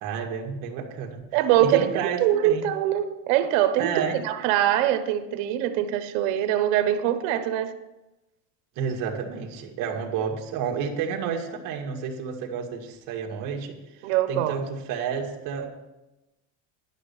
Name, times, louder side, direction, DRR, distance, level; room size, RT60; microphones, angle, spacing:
voice 1, 0.0-1.2 1.6-2.7 3.8-4.2 8.8-15.7, right 6 dB, 55° right, 1 dB, 1.9 m, -30 dB
voice 2, 1.3-1.9 2.2-7.7 14.0-14.6, right 11 dB, 80° right, 10 dB, 1.1 m, -23 dB
11.5 x 6.4 x 7.0 m, 0.99 s
cardioid pair, 150°, 39 cm